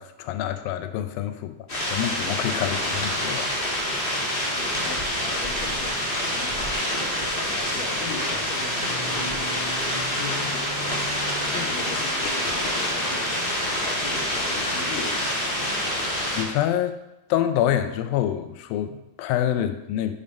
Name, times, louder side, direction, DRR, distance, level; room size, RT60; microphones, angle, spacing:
voice 1, 0.0-3.5 3.8-4.2 16.4-17.0 17.3-20.1, left 11 dB, 90° left, 10 dB, 2.4 m, -27 dB
sound 1, 1.7-16.4, equal, 55° left, 0.5 m, -26 dB
voice 2, 2.6-3.1 4.6-6.7 7.3-9.7 10.1-11.0 11.4-15.3, left 5 dB, 75° left, -3 dB, 2.4 m, -39 dB
6.9 x 5.2 x 5.2 m, 0.93 s
omnidirectional pair, 4.0 m